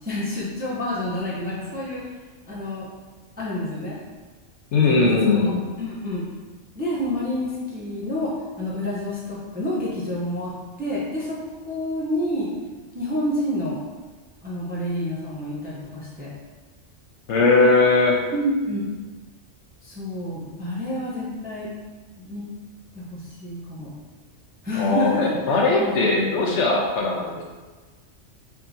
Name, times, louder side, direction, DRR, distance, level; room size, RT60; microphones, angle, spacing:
voice 1, 0.0-2.0 2.5-2.9 3.4-4.0 4.8-5.5 5.8-6.3 6.7-10.5 10.8-11.4 11.7-12.5 12.9-13.8 14.4-16.3 18.3-18.9 19.8-21.8 22.2-22.4 22.9-23.9 24.6-26.6, left 1 dB, 10° right, -7 dB, 0.5 m, -28 dB
voice 2, 4.7-5.6 17.3-18.2 24.8-27.4, left 3 dB, 70° left, -2 dB, 0.9 m, -19 dB
4.6 x 2.7 x 2.7 m, 1.3 s
omnidirectional pair, 1.3 m